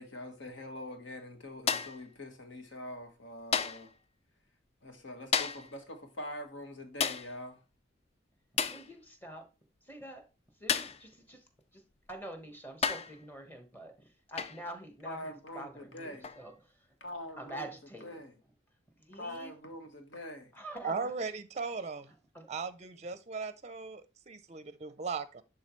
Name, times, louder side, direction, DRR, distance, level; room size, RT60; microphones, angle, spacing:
voice 1, 0.0-3.9 4.8-7.6 15.0-16.3 17.0-17.7 18.0-18.3 19.2-20.5, left 1 dB, 75° left, 1.5 m, -44 dB
sound 1, 1.7-2.1 3.5-3.9 5.3-5.7 7.0-7.3 8.6-8.9 10.7-11.0 12.1-12.2 12.8-13.2 14.4-14.6 16.2-16.4, left 6 dB, 35° left, 0.4 m, -32 dB
voice 2, 8.7-9.5 9.8-10.2 10.6-11.8 12.1-16.9 17.4-18.2 19.0-19.5 20.5-21.1 22.3-22.5, right 1 dB, 10° left, 1.3 m, -46 dB
voice 3, 20.8-22.1 22.5-25.4, right 5 dB, 35° right, 0.5 m, -38 dB
11.0 x 3.8 x 3.1 m
head